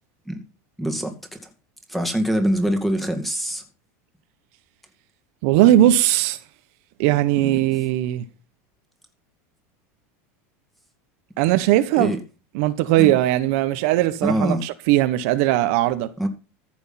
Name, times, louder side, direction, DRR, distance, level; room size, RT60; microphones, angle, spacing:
voice 1, 0.8-1.4 1.9-3.6 7.4-7.6 11.9-12.2 13.0-13.2 14.2-14.6 16.2-16.3, equal, ahead, 2.2 m, -24 dB
voice 2, 5.4-6.4 7.0-8.3 11.4-12.2 12.5-16.1, right 14 dB, 65° right, 1.0 m, -19 dB
14.5 x 6.3 x 5.7 m
supercardioid pair, 135°, 8 cm